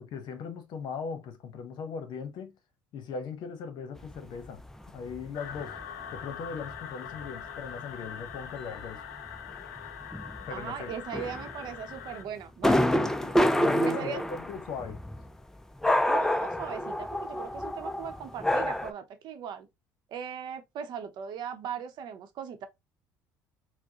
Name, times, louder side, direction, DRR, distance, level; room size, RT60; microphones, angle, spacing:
voice 1, 0.0-2.6 2.9-4.6 4.9-5.8 6.1-9.1 10.5-10.9 12.9-15.0, left 5 dB, 60° left, 0.9 m, -39 dB
sound 1, 4.0-4.2 4.5-4.7 5.0-7.3 7.7-7.9 8.3-8.5 8.8-8.9 9.2-12.1 12.6-15.4 15.8-18.9, equal, 5° left, 0.4 m, -28 dB
sound 2, 5.3-12.2, left 8 dB, 85° left, 0.5 m, -43 dB
voice 2, 10.5-12.9 13.8-14.2 16.1-19.7 20.1-22.7, right 8 dB, 60° right, 0.7 m, -39 dB
4.4 x 2.1 x 2.8 m
hypercardioid pair, 65°, 8 cm